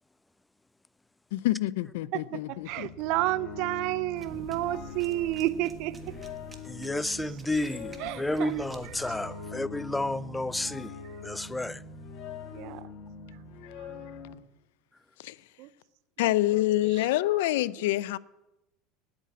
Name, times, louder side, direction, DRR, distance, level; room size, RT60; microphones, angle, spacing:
voice 1, 1.3-2.9 15.2-15.4 16.2-18.2, left 16 dB, 80° left, 0.4 m, -27 dB
voice 2, 2.1-6.1 6.8-9.5 12.5-12.9 13.9-14.0 15.6-15.7 16.2-16.8, right 15 dB, 65° right, 0.5 m, -32 dB
sound 1, 2.6-14.3, left 4 dB, 60° left, 1.8 m, -43 dB
sound 2, 4.2-9.2, right 2 dB, 15° right, 1.4 m, -50 dB
voice 3, 6.6-10.9 11.2-11.8, left 2 dB, 10° left, 0.4 m, -31 dB
9.4 x 8.5 x 8.6 m
supercardioid pair, 110°, 0 cm